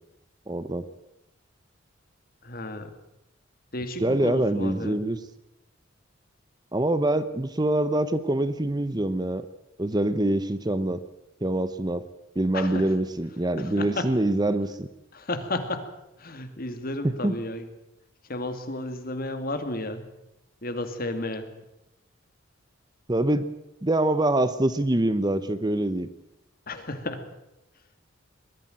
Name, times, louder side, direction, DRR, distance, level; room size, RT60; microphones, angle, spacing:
voice 1, 0.5-0.9 4.0-5.2 6.7-9.5 9.8-11.0 11.4-12.1 12.4-14.9 17.0-17.4 23.1-23.5 23.8-26.1, right 1 dB, 20° right, 13 dB, 0.8 m, -25 dB
voice 2, 2.4-2.9 3.7-5.0 12.5-12.8 13.8-14.1 15.1-15.8 16.2-17.6 18.3-20.0 20.6-21.5 26.7-27.2, left 2 dB, 45° left, 8 dB, 2.3 m, -32 dB
21.0 x 13.5 x 9.2 m, 0.90 s
head